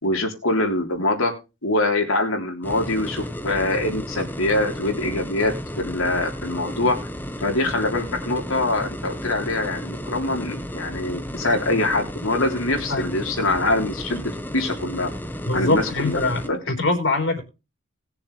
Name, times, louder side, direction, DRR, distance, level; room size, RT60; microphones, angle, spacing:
voice 1, 0.0-1.3 1.6-7.1 7.4-15.1 15.5-16.2 16.4-16.6, left 2 dB, 80° left, 3 dB, 3.4 m, -24 dB
sound 1, 2.6-16.5, equal, 10° left, 0.9 m, -33 dB
voice 2, 15.4-16.4 16.7-17.4, left 2 dB, 60° left, 5 dB, 3.6 m, -22 dB
20.0 x 7.2 x 3.2 m, 0.29 s
head